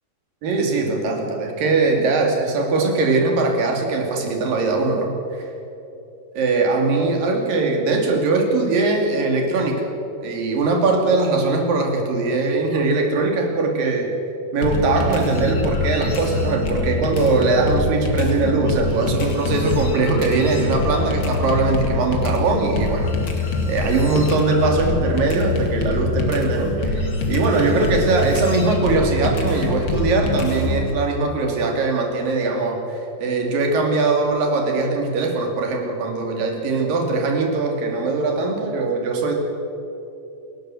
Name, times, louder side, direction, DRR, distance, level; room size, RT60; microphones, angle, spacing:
voice 1, 0.4-5.5 6.3-9.9 10.2-14.1 14.5-23.1 23.4-39.3, right 3 dB, 70° right, 1 dB, 4.3 m, -21 dB
sound 1, 14.6-30.9, left 2 dB, 40° left, 2.4 m, -24 dB
27.5 x 12.0 x 7.8 m, 2.9 s
omnidirectional pair, 4.2 m